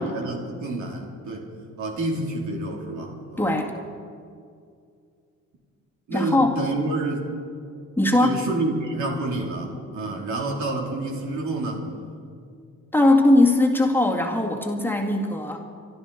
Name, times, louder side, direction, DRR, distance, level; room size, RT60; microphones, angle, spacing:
voice 1, 0.0-1.4 1.8-3.6 6.1-7.3 8.2-11.8, right 2 dB, 75° right, 0 dB, 3.0 m, -29 dB
voice 2, 3.4-3.7 6.1-6.6 8.0-8.4 12.9-15.6, left 2 dB, 5° left, 0 dB, 2.0 m, -20 dB
26.0 x 12.0 x 4.1 m, 2.3 s
cardioid pair, 90°, 30 cm